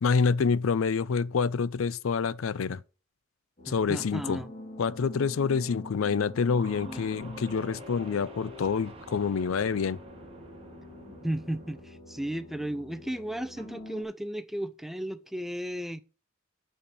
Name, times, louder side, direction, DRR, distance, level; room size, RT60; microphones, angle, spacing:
voice 1, 0.0-2.8 3.7-4.4 4.8-10.0, left 5 dB, 80° left, 0.4 m, -27 dB
sound 1, 3.6-14.0, left 2 dB, 30° left, 2.0 m, -46 dB
voice 2, 3.7-4.5 6.8-7.0 11.2-16.0, right 1 dB, ahead, 0.4 m, -34 dB
sound 2, 6.6-11.8, right 2 dB, 30° right, 1.3 m, -48 dB
8.6 x 4.4 x 6.9 m
head